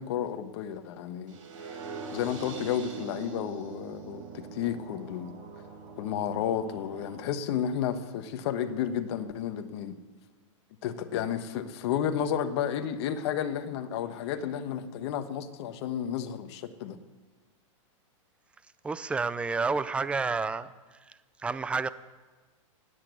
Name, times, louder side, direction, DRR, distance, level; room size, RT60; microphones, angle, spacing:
voice 1, 0.0-1.4 2.1-5.3 6.0-10.0 10.8-17.0, left 9 dB, 55° left, 8 dB, 1.2 m, -32 dB
sound 1, 1.3-7.3, right 5 dB, 70° right, 5.3 m, -42 dB
voice 2, 18.8-20.7 21.0-21.9, right 4 dB, 5° right, 15 dB, 0.4 m, -30 dB
17.5 x 8.3 x 9.1 m, 1.3 s
hypercardioid pair, 140°, 17 cm